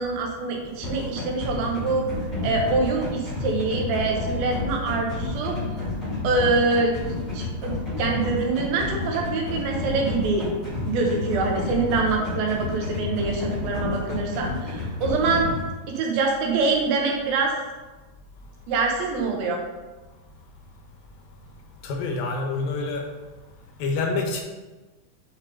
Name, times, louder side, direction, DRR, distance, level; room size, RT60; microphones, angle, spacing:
voice 1, 0.0-2.0 2.4-5.6 6.2-7.0 7.3-10.5 10.9-15.5 15.9-17.5 18.7-19.6, right 3 dB, 85° right, 1 dB, 2.8 m, -25 dB
sound 1, 0.8-15.6, left 2 dB, 15° left, 1.7 m, -30 dB
voice 2, 21.8-23.0 23.8-24.4, left 3 dB, 80° left, 2 dB, 2.7 m, -27 dB
7.0 x 5.2 x 3.8 m, 1.2 s
omnidirectional pair, 4.1 m